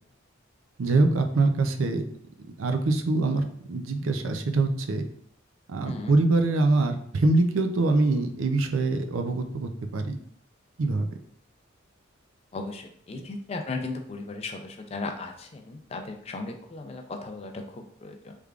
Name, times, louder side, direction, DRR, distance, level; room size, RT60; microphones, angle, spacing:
voice 1, 0.8-2.0 2.6-5.0 5.7-10.2 10.8-11.0, right 2 dB, 80° right, 6 dB, 0.4 m, -24 dB
voice 2, 5.8-6.2 12.5-18.3, left 3 dB, 30° left, 4 dB, 0.4 m, -36 dB
3.4 x 3.3 x 2.4 m, 0.65 s
head